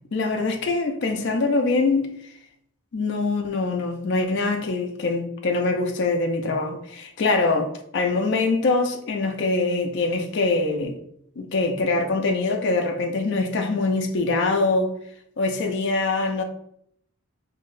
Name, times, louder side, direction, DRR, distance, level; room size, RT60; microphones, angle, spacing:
voice 1, 0.1-2.1 2.9-11.0 11.4-14.9 15.4-16.4, left 3 dB, 50° left, 0.4 m, -23 dB
2.7 x 2.6 x 3.1 m
head